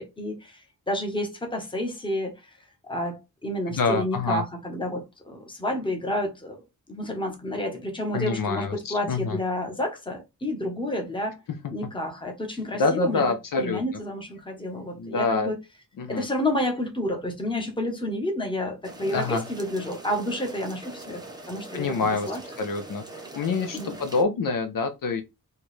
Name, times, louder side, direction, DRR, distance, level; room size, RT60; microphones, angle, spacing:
voice 1, 0.0-2.6 2.8-11.4 11.7-13.2 13.6-15.6 16.1-22.4 23.7-24.0, left 1 dB, 15° left, 0.9 m, -30 dB
voice 2, 3.7-4.4 8.1-9.4 12.8-13.8 15.0-15.5 16.0-16.3 19.0-19.5 21.7-23.0 23.3-25.2, left 4 dB, 65° left, 0.7 m, -26 dB
sound 1, 18.8-24.2, right 2 dB, 10° right, 0.7 m, -42 dB
4.5 x 2.3 x 3.2 m
wide cardioid pair, 175°, 35 cm